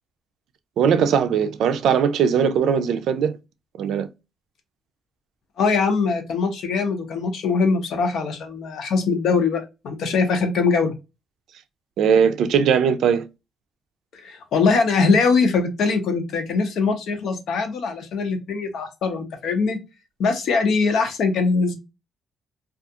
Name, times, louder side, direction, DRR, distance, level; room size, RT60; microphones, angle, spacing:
voice 1, 0.8-3.4 3.8-4.1 12.0-13.3, right 7 dB, 75° right, 0.3 m, -19 dB
voice 2, 5.6-10.9 14.1-19.8 20.2-21.7, left 4 dB, 70° left, 0.6 m, -22 dB
2.4 x 2.4 x 2.7 m
cardioid pair, 90°, 0 cm